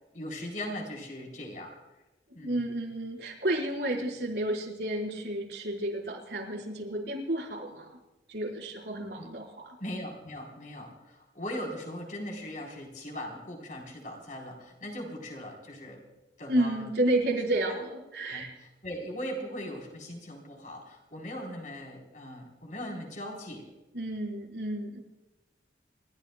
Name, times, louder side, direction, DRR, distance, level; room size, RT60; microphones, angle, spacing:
voice 1, 0.1-1.8 2.3-2.6 9.2-9.3 9.8-16.0 16.4-16.8 18.3-23.7, equal, 45° left, 1 dB, 4.1 m, -39 dB
voice 2, 2.3-8.0 8.3-9.7 16.5-18.5 23.9-25.0, right 1 dB, 75° right, -2 dB, 4.8 m, -31 dB
29.0 x 14.5 x 2.3 m, 1.1 s
head